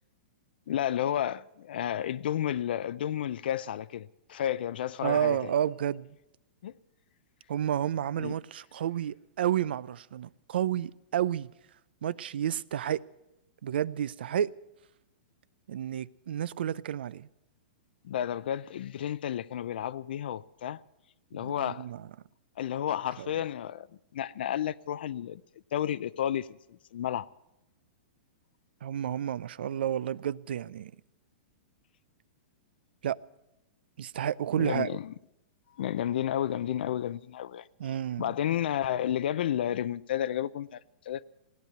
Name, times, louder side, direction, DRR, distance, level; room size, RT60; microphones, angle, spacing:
voice 1, 0.7-5.5 6.6-6.7 8.2-8.3 18.0-20.8 21.3-21.9 22.6-23.9 24.1-25.4 25.7-27.3 34.6-35.1 35.8-37.7 38.2-40.8 41.1-41.2, left 10 dB, 65° left, 0.5 m, -31 dB
voice 2, 5.0-6.1 7.5-11.5 12.0-13.0 13.6-14.5 15.7-17.3 21.3-22.0 23.2-23.3 28.8-30.9 33.0-33.2 34.0-35.0 37.8-38.3, right 10 dB, 70° right, 0.5 m, -31 dB
17.0 x 10.5 x 8.0 m
hypercardioid pair, 160°, 6 cm